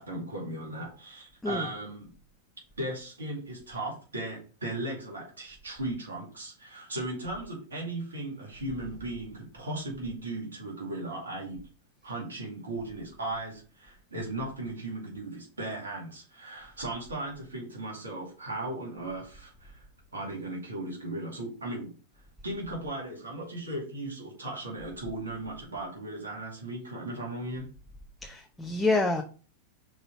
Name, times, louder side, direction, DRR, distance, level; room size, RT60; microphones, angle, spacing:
voice 1, 0.0-2.1 2.8-11.7 12.0-19.8 20.1-22.0 22.4-27.7, right 2 dB, 80° right, 2.3 m, -37 dB
voice 2, 28.2-29.2, left 2 dB, 10° left, 0.9 m, -27 dB
5.9 x 4.0 x 4.6 m
figure-of-eight pair, 95°, 0 cm